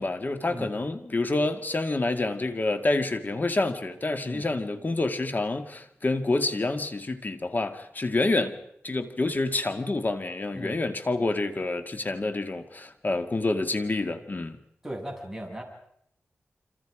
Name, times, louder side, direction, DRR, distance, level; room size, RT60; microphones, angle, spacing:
voice 1, 0.0-8.6 8.8-14.6, left 2 dB, 45° left, 2.1 m, -28 dB
voice 2, 14.8-15.6, right 1 dB, 10° right, 7.3 m, -37 dB
28.5 x 26.0 x 5.1 m
wide cardioid pair, 65°, 4 cm